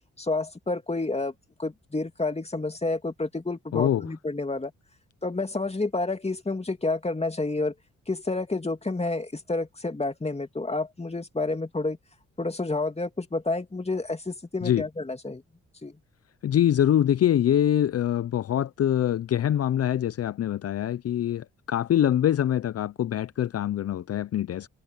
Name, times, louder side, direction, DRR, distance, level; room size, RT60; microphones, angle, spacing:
voice 1, 0.2-1.3 1.6-4.7 5.2-7.7 8.1-12.0 12.4-15.4 15.8-15.9, left 3 dB, 20° left, 2.5 m, -29 dB
voice 2, 3.7-4.1 14.6-14.8 16.4-24.7, left 11 dB, 55° left, 0.6 m, -24 dB
cardioid pair, 60°, 29 cm